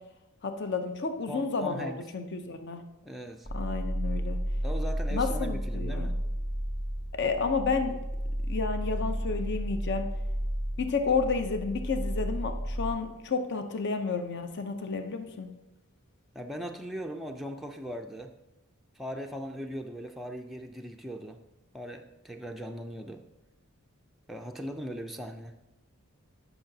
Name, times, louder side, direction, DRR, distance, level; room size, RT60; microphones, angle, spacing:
voice 1, 0.4-2.8 3.5-4.4 5.1-6.1 7.1-8.0 8.5-10.1 10.8-15.5, left 4 dB, 50° left, 7 dB, 0.6 m, -31 dB
voice 2, 1.3-2.0 3.0-3.5 4.6-6.2 16.3-18.3 19.0-21.4 21.7-23.2 24.3-25.5, equal, ahead, 2 dB, 0.4 m, -39 dB
sound 1, 3.4-12.9, equal, 25° left, 2.3 m, -32 dB
12.0 x 5.8 x 2.7 m, 0.97 s
head